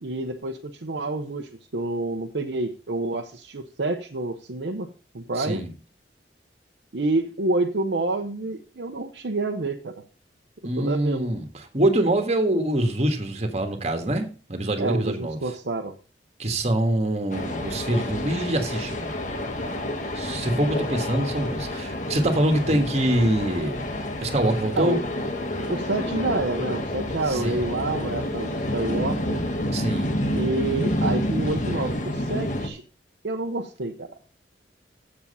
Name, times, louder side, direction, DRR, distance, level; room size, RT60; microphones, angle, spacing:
voice 1, 0.0-4.9 5.1-5.6 6.9-10.0 10.8-11.3 14.8-15.9 24.8-25.0 25.7-29.4 30.3-32.8 33.2-34.2, right 2 dB, 70° right, 0.8 m, -28 dB
voice 2, 5.4-5.7 10.6-15.4 16.4-19.1 20.1-23.9 24.2-25.0 27.3-27.6 29.7-30.1, right 1 dB, 40° right, 1.6 m, -24 dB
sound 1, 17.3-32.7, left 1 dB, 45° left, 1.3 m, -29 dB
7.5 x 7.2 x 5.5 m
head